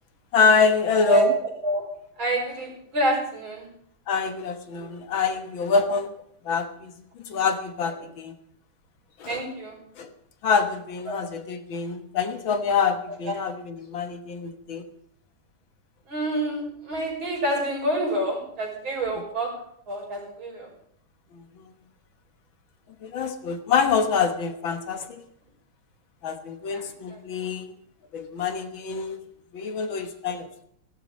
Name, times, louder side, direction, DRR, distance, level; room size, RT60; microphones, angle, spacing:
voice 1, 0.3-1.3 4.1-6.1 6.5-8.3 9.2-9.4 10.0-10.1 10.4-14.8 21.3-21.7 23.0-25.2 26.2-27.7 28.1-29.2 29.5-30.6, left 5 dB, 65° left, 8 dB, 2.1 m, -25 dB
voice 2, 0.9-1.3 1.6-1.8 2.2-3.7 4.8-4.9 9.3-9.8 11.1-11.2 13.3-13.4 16.1-19.5 19.9-20.7 26.7-27.2, right 1 dB, 65° right, -1 dB, 6.4 m, -28 dB
15.5 x 13.0 x 5.3 m, 0.70 s
omnidirectional pair, 2.3 m